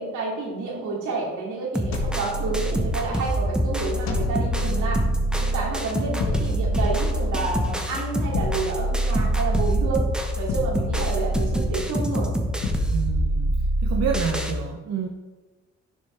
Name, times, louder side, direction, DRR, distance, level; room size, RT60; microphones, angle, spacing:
voice 1, 0.0-5.0 5.4-10.0 10.4-12.3, right 3 dB, 80° right, -3 dB, 2.7 m, -29 dB
sound 1, 1.7-14.5, equal, 5° right, 1.0 m, -27 dB
sound 2, 1.9-3.2 4.1-5.7 6.2-7.6 8.3-10.0 10.5-11.9 12.6-14.2, right 1 dB, 65° left, 1.6 m, -26 dB
voice 2, 12.9-15.1, right 6 dB, 60° right, 2 dB, 0.9 m, -29 dB
11.0 x 6.1 x 3.4 m, 1.2 s
cardioid pair, 90°, 30 cm